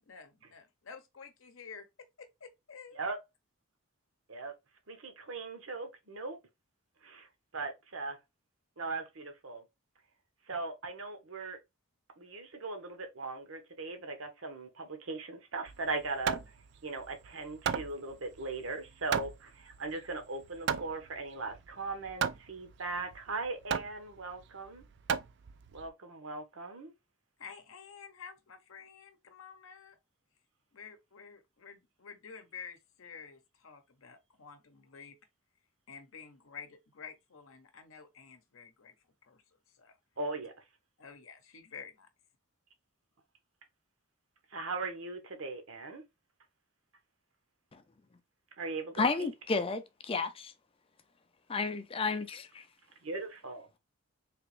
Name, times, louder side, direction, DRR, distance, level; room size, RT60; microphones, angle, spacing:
voice 1, 0.0-1.8 2.2-3.0 27.4-29.9 30.7-35.2 35.9-38.9 39.3-39.4 39.8-39.9 41.0-42.1, left 6 dB, 70° left, 0.7 m, -50 dB
voice 2, 4.9-6.4 7.0-7.3 7.5-8.2 8.8-9.6 10.5-11.6 12.2-16.4 16.8-24.8 25.7-26.9 40.2-40.5 44.5-46.0 48.6-49.3 53.0-53.7, right 3 dB, 70° right, 0.9 m, -39 dB
Hammer, 15.7-25.9, right 7 dB, 55° right, 0.3 m, -37 dB
voice 3, 49.0-50.5 51.5-52.6, left 4 dB, 25° left, 0.4 m, -32 dB
3.4 x 2.9 x 3.1 m
head